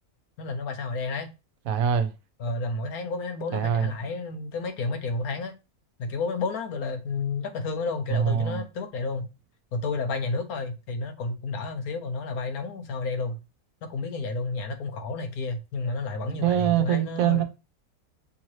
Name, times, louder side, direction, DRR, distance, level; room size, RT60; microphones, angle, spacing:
voice 1, 0.4-1.3 2.4-5.5 6.0-9.3 9.7-13.4 13.8-17.4, left 3 dB, 75° left, 1.3 m, -31 dB
voice 2, 1.7-2.1 3.5-3.9 8.1-8.6 16.3-17.4, right 9 dB, 75° right, 1.0 m, -24 dB
6.2 x 2.8 x 3.0 m
omnidirectional pair, 1.6 m